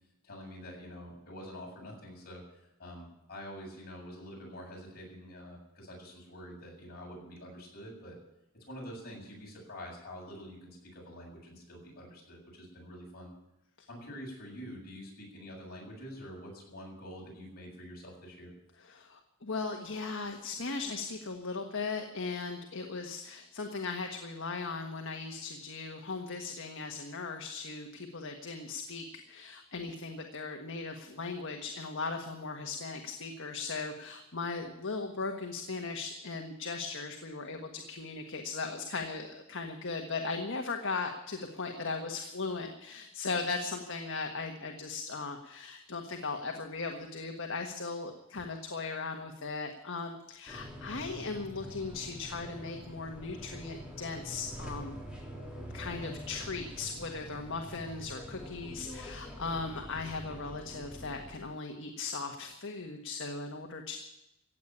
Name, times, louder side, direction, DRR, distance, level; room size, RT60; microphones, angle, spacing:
voice 1, 0.2-8.1 8.7-13.3 13.9-18.5, equal, 45° left, -2 dB, 7.8 m, -46 dB
voice 2, 18.8-55.0 55.7-64.0, left 4 dB, 65° left, 3 dB, 1.5 m, -38 dB
sound 1, 50.5-61.4, equal, 5° right, 3.6 m, -45 dB
16.0 x 8.7 x 9.8 m, 0.89 s
head